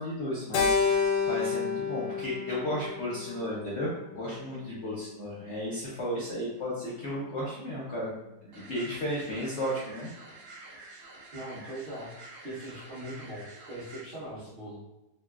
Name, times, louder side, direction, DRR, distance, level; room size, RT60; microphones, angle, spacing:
voice 1, 0.0-8.1 8.4-10.1, equal, 60° left, -6 dB, 0.7 m, -34 dB
Keyboard (musical), 0.5-4.9, left 5 dB, 85° left, 1.2 m, -30 dB
sound 1, 8.5-14.0, right 2 dB, 80° right, 0.5 m, -48 dB
voice 2, 11.3-14.8, right 1 dB, 40° right, -10 dB, 0.7 m, -41 dB
3.0 x 2.7 x 2.3 m, 0.99 s
omnidirectional pair, 1.9 m